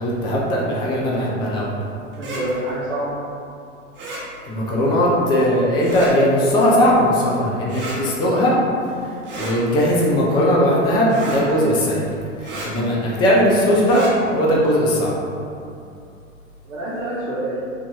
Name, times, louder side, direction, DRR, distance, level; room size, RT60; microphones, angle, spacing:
voice 1, 0.0-1.7 4.5-12.0 12.4-15.1, equal, 15° left, -4 dB, 0.3 m, -19 dB
sound 1, 2.1-2.4 3.9-4.2 5.8-6.1 7.7-8.0 9.2-9.5 11.1-11.4 12.4-12.7 13.8-14.1, right 2 dB, 30° right, 0.9 m, -31 dB
voice 2, 2.1-3.2 16.6-17.6, right 1 dB, 70° right, -8 dB, 0.8 m, -27 dB
3.5 x 2.6 x 2.9 m, 2.5 s
figure-of-eight pair, 90°, 39 cm